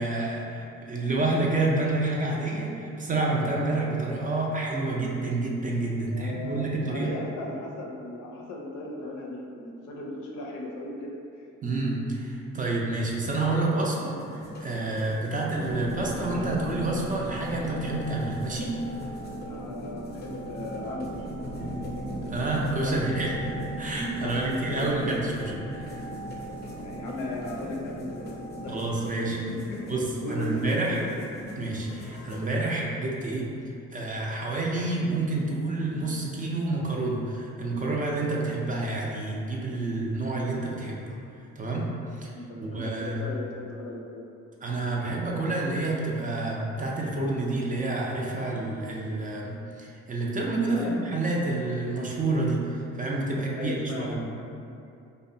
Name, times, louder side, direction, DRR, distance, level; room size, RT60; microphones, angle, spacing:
voice 1, 0.0-7.1 11.6-14.1 14.6-18.7 22.3-23.5 23.8-25.9 28.7-29.4 29.9-31.0 31.6-33.5 33.9-41.0 41.6-41.9 42.2-42.3 42.6-43.2 44.6-54.2, right 2 dB, 30° right, -3 dB, 0.4 m, -28 dB
voice 2, 6.1-11.5 19.4-21.4 22.8-23.4 24.2-24.9 26.8-28.3 28.6-28.8 29.3-31.1 42.3-44.0 50.6-51.0 53.5-54.7, left 1 dB, 85° left, -1 dB, 0.5 m, -36 dB
sound 1, 14.2-32.5, left 2 dB, 35° left, 0.4 m, -42 dB
sound 2, 15.6-28.9, right 1 dB, 80° right, 0.6 m, -38 dB
2.6 x 2.1 x 2.5 m, 2.6 s
cardioid pair, 90°, 30 cm